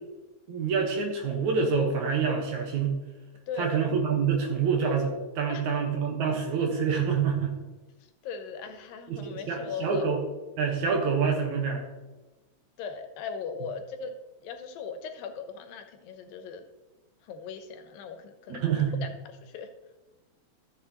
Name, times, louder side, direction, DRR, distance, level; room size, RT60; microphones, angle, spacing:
voice 1, 0.5-3.0 3.6-7.5 9.1-10.2 10.6-11.8 18.5-19.0, right 6 dB, 65° right, 2 dB, 2.4 m, -27 dB
voice 2, 3.5-3.8 5.5-5.7 8.2-10.1 12.8-16.7 17.2-19.7, left 6 dB, 85° left, 7 dB, 2.6 m, -38 dB
14.0 x 7.1 x 3.0 m, 1.1 s
omnidirectional pair, 4.0 m